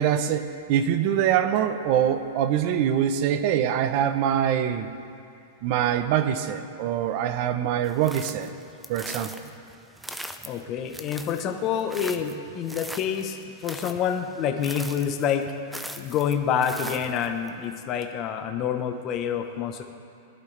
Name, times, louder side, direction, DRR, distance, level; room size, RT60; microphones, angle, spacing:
voice 1, 0.0-4.9 5.6-8.5 8.9-9.3, right 9 dB, 45° right, 10 dB, 0.8 m, -24 dB
sound 1, 7.8-17.5, right 1 dB, ahead, 0.5 m, -41 dB
voice 2, 10.4-15.4 16.0-19.8, left 8 dB, 30° left, 5 dB, 1.0 m, -27 dB
21.5 x 11.5 x 3.4 m, 2.5 s
supercardioid pair, 160°, 0 cm